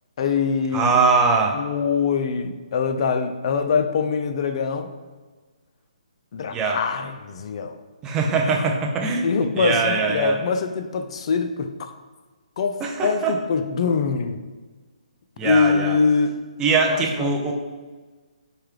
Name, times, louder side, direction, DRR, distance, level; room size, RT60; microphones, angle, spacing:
voice 1, 0.2-0.9 1.5-4.9 6.3-7.8 8.4-8.6 9.2-11.9 12.6-14.4 15.4-16.4 16.9-17.3, left 5 dB, 50° left, 8 dB, 0.3 m, -23 dB
voice 2, 0.7-1.6 6.5-6.8 8.0-9.3 9.6-10.4 12.8-13.3 15.4-16.0 16.6-17.5, right 4 dB, 15° right, 1 dB, 0.4 m, -21 dB
4.6 x 2.2 x 3.2 m, 1.3 s
hypercardioid pair, 145°, 4 cm